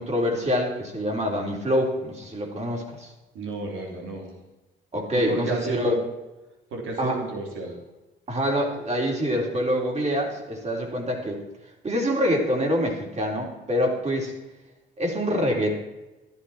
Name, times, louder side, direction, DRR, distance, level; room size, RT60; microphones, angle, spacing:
voice 1, 0.0-3.1 4.9-5.9 7.0-7.2 8.3-11.4 11.8-14.3 15.0-15.7, equal, 35° right, 0 dB, 3.9 m, -25 dB
voice 2, 3.4-4.3 5.3-6.0 6.7-7.8, right 2 dB, 80° right, 0 dB, 3.3 m, -32 dB
13.5 x 11.5 x 4.4 m, 1.0 s
cardioid pair, 90°, 20 cm